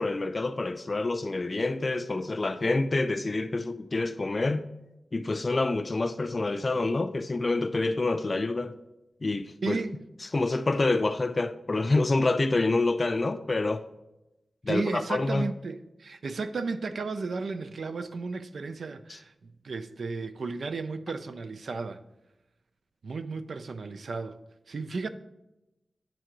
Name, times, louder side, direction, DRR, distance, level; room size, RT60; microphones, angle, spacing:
voice 1, 0.0-4.6 5.1-8.7 9.2-9.8 10.3-13.8 14.6-15.5, left 2 dB, 40° left, 0.4 m, -27 dB
voice 2, 9.6-10.0 14.7-22.0 23.0-24.4 24.7-25.1, right 4 dB, 80° right, 0.4 m, -34 dB
9.0 x 3.8 x 4.6 m
wide cardioid pair, 70°, 0 cm